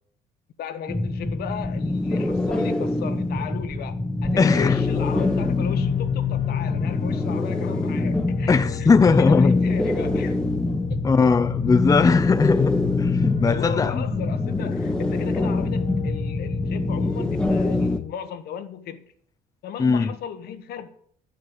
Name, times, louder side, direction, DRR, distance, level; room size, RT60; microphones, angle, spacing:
voice 1, 0.6-8.5 8.8-10.4 10.9-11.0 13.5-19.0 19.6-20.9, left 8 dB, 70° left, 1.3 m, -36 dB
sound 1, 0.9-18.0, left 2 dB, 5° left, 1.2 m, -25 dB
sound 2, 4.4-18.1, left 12 dB, 50° left, 0.9 m, -30 dB
voice 2, 4.4-4.8 8.5-9.6 11.0-14.0 19.8-20.1, left 4 dB, 20° left, 0.6 m, -19 dB
11.0 x 6.3 x 8.7 m
cardioid pair, 110°, 17 cm